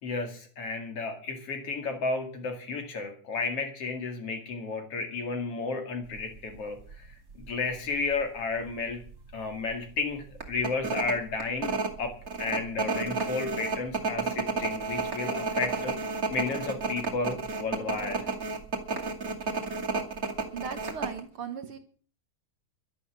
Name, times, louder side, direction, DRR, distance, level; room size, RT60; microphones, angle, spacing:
voice 1, 0.0-7.1 7.3-9.0 9.3-11.7 12.0-12.1 12.4-15.9 16.3-18.2, left 4 dB, 50° left, 5 dB, 3.1 m, -32 dB
sound 1, 6.2-6.4 6.9-7.0 7.3-8.2 8.6-8.7 9.1-9.3 9.7-9.8 10.4-21.2, right 4 dB, 30° right, 2.5 m, -31 dB
voice 2, 20.5-21.8, right 6 dB, 55° right, 8 dB, 1.6 m, -37 dB
12.5 x 11.5 x 7.4 m, 0.43 s
omnidirectional pair, 3.8 m